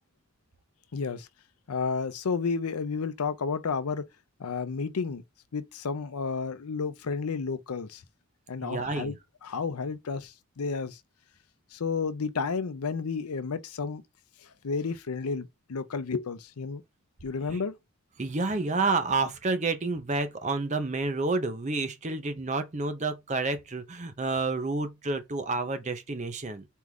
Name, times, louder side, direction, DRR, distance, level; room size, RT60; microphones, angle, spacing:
voice 1, 0.9-1.3 1.7-4.0 4.4-5.2 5.5-8.0 8.5-9.2 9.4-11.0 11.7-14.0 14.6-16.8 17.2-17.7, left 5 dB, 90° left, 0.6 m, -31 dB
voice 2, 8.6-9.1 17.5-17.6 18.2-26.7, right 3 dB, 35° right, 0.6 m, -29 dB
4.5 x 2.5 x 3.5 m
head